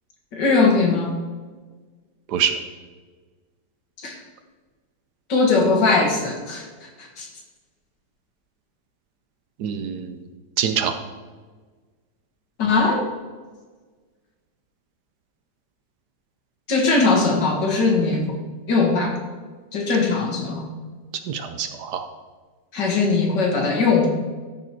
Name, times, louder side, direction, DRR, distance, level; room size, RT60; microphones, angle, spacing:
voice 1, 0.3-1.1 4.0-4.2 5.3-7.3 12.6-13.0 16.7-18.4 18.7-19.1 19.7-20.7 22.7-24.1, left 3 dB, 70° left, 1 dB, 2.3 m, -20 dB
voice 2, 9.6-10.2 10.6-10.9 21.2-22.1, right 8 dB, 70° right, 8 dB, 1.2 m, -25 dB
13.5 x 4.9 x 4.6 m, 1.4 s
omnidirectional pair, 2.0 m